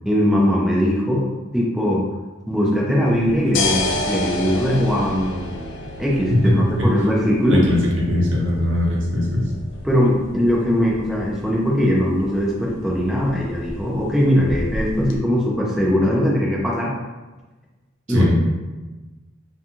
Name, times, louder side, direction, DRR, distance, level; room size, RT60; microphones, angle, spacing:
voice 1, 0.1-2.0 2.5-5.7 6.0-7.6 9.8-16.9 18.1-18.3, equal, ahead, -4 dB, 0.4 m, -20 dB
sound 1, 3.1-15.2, left 2 dB, 65° left, 0.4 m, -31 dB
voice 2, 7.5-7.8 8.1-9.4 18.1-18.4, left 1 dB, 70° right, -4 dB, 0.7 m, -19 dB
2.4 x 2.3 x 2.8 m, 1.2 s
head